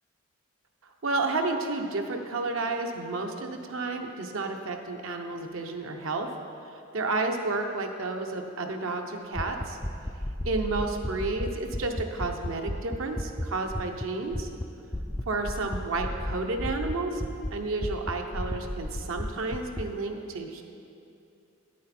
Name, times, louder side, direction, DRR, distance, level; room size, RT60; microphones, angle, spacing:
voice 1, 1.0-6.3 6.7-9.8 10.4-14.5 15.3-17.2 17.5-20.6, right 3 dB, 70° right, 4 dB, 0.8 m, -31 dB
sound 1, 9.3-14.0 14.3-14.6 14.9-17.5 17.8-19.8, left 1 dB, 10° left, 0.3 m, -32 dB
9.7 x 8.4 x 4.3 m, 2.7 s
head